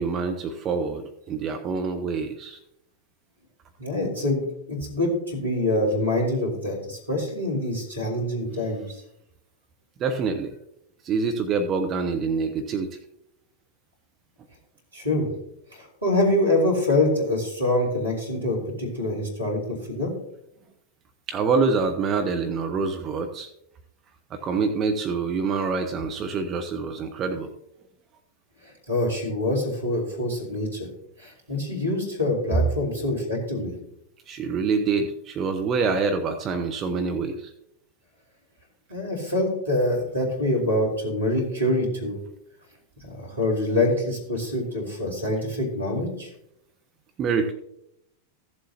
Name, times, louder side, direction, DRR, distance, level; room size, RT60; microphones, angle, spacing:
voice 1, 0.0-2.6 10.0-10.5 11.0-13.0 21.3-23.5 24.3-27.5 34.3-37.5 47.2-47.5, right 4 dB, 30° right, 6 dB, 0.8 m, -26 dB
voice 2, 3.8-4.4 4.7-9.0 14.9-15.3 15.7-20.1 28.6-30.9 31.2-33.7 38.9-42.2 43.0-46.3, left 1 dB, 80° right, -1 dB, 3.6 m, -25 dB
15.0 x 7.6 x 2.8 m, 0.78 s
figure-of-eight pair, 90°, 0 cm